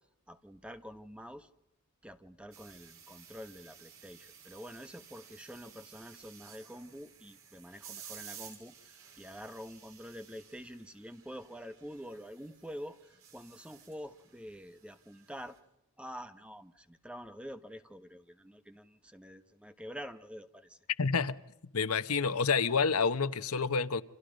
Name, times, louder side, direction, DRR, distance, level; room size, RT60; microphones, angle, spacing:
voice 1, 0.3-1.5 2.0-15.6 16.0-20.8, equal, 5° right, 9 dB, 1.1 m, -47 dB
sound 1, 2.5-15.6, right 8 dB, 65° right, 6.4 m, -54 dB
voice 2, 21.0-21.4 21.7-24.0, left 5 dB, 80° left, 13 dB, 1.0 m, -28 dB
29.0 x 26.5 x 5.2 m, 0.82 s
head